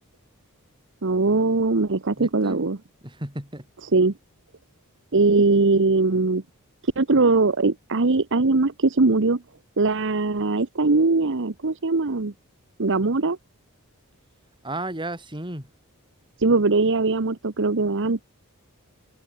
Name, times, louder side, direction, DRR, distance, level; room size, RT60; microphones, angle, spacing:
voice 1, 1.0-2.8 3.9-4.1 5.1-6.4 6.8-9.4 9.8-12.3 12.8-13.4 16.4-18.2, right 3 dB, 60° right, 1.0 m, -21 dB
voice 2, 2.2-2.6 3.0-3.7 14.6-15.7, right 1 dB, 20° right, 7.4 m, -33 dB
head